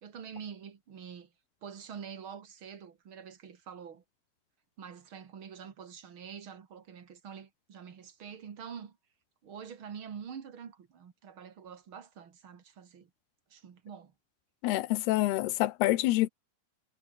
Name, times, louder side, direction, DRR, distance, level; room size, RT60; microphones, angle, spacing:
voice 1, 0.0-1.3 1.6-4.0 4.8-9.0 9.4-13.1 13.5-14.1, right 7 dB, 45° right, 2.0 m, -46 dB
voice 2, 14.6-16.3, left 17 dB, 80° left, 2.8 m, -27 dB
omnidirectional pair, 4.7 m